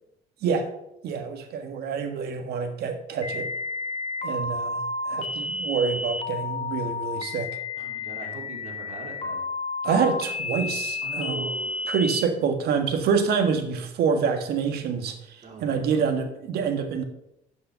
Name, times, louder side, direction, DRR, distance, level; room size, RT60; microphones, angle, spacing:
voice 1, 1.0-3.5 4.2-4.8 5.1-7.5 9.8-11.5 11.9-17.0, right 6 dB, 70° right, 6 dB, 1.6 m, -26 dB
sound 1, 3.2-12.2, left 3 dB, 35° left, 1.2 m, -31 dB
voice 2, 7.8-9.5 11.0-11.8 15.4-16.1, right 4 dB, 45° right, 1 dB, 2.6 m, -41 dB
11.0 x 5.5 x 5.7 m, 0.82 s
cardioid pair, 110°, 17 cm